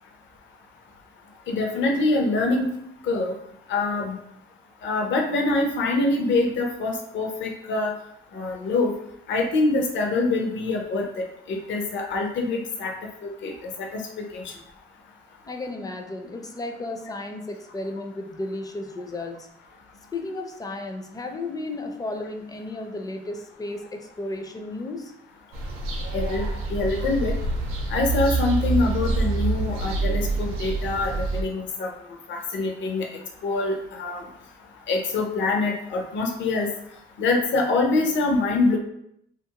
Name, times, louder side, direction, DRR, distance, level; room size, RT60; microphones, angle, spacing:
voice 1, 1.5-2.7 3.0-3.3 3.7-4.2 4.8-7.9 8.3-8.9 9.3-12.9 13.2-13.5 13.8-14.4 26.1-27.3 27.9-31.9 32.3-33.1 33.4-34.2 34.9-36.7 37.2-38.8, left 3 dB, 65° left, 1 dB, 0.6 m, -25 dB
voice 2, 15.4-19.5 20.1-25.1, left 2 dB, 20° left, 4 dB, 0.4 m, -34 dB
sound 1, 25.5-31.4, right 3 dB, 85° right, 0.6 m, -26 dB
2.5 x 2.5 x 2.8 m, 0.74 s
cardioid pair, 90°, 21 cm